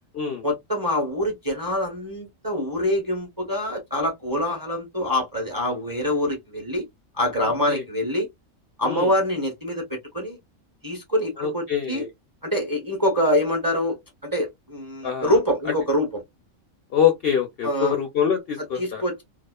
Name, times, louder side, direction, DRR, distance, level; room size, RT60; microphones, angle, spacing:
voice 1, 0.4-6.9 7.1-8.3 8.8-10.4 10.8-12.0 12.4-16.2 17.6-18.0 18.8-19.2, left 1 dB, 20° right, 0.6 m, -25 dB
voice 2, 11.4-12.1 15.0-15.4 16.9-19.0, left 8 dB, 65° left, 0.6 m, -24 dB
2.4 x 2.3 x 2.2 m
omnidirectional pair, 1.4 m